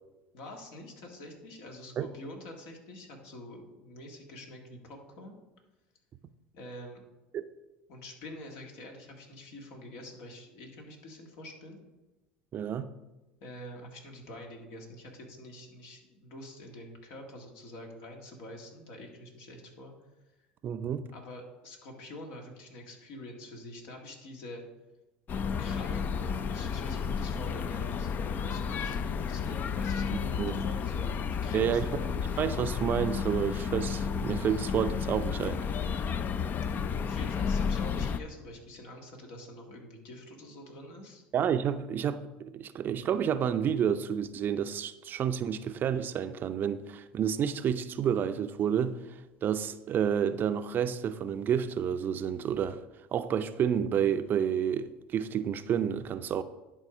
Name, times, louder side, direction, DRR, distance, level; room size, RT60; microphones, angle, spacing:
voice 1, 0.3-5.4 6.5-7.0 7.9-11.8 13.4-19.9 21.1-24.6 25.6-32.0 37.0-41.2, left 1 dB, 70° left, 1.9 m, -46 dB
voice 2, 12.5-12.9 20.6-21.1 30.1-30.6 31.5-31.9 32.4-35.8 41.3-49.0 49.4-52.8 53.1-56.4, right 8 dB, 45° right, 0.5 m, -30 dB
sound 1, 25.3-38.2, left 6 dB, 40° left, 0.5 m, -32 dB
11.0 x 3.8 x 4.9 m
hypercardioid pair, 85°, 5 cm